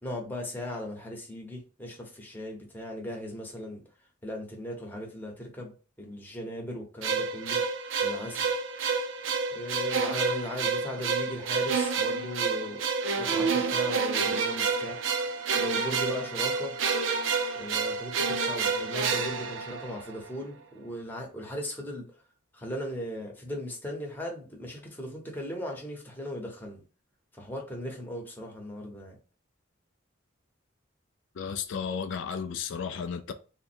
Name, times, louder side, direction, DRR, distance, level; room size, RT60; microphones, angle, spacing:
voice 1, 0.0-3.8 4.2-5.7 6.0-7.6 8.0-8.4 9.5-12.8 13.1-15.1 15.6-16.7 17.5-22.1 22.5-26.8 27.4-29.2, equal, 10° left, 0.9 m, -38 dB
sound 1, 7.0-20.3, right 5 dB, 80° right, 0.5 m, -29 dB
voice 2, 31.4-33.3, left 6 dB, 75° left, 0.3 m, -33 dB
3.4 x 2.1 x 4.3 m
head